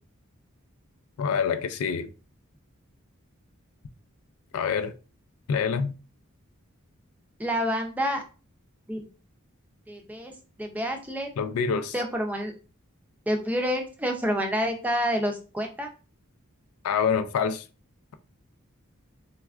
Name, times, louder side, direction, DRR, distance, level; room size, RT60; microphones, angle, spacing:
voice 1, 1.2-2.1 4.5-4.9 5.5-5.9 11.4-11.9 16.8-17.6, left 6 dB, 85° left, 0.4 m, -26 dB
voice 2, 7.4-8.2 8.9-9.0 9.9-10.3 10.6-11.3 11.9-12.5 13.3-15.9, equal, 5° right, 0.4 m, -28 dB
4.2 x 2.2 x 2.3 m
head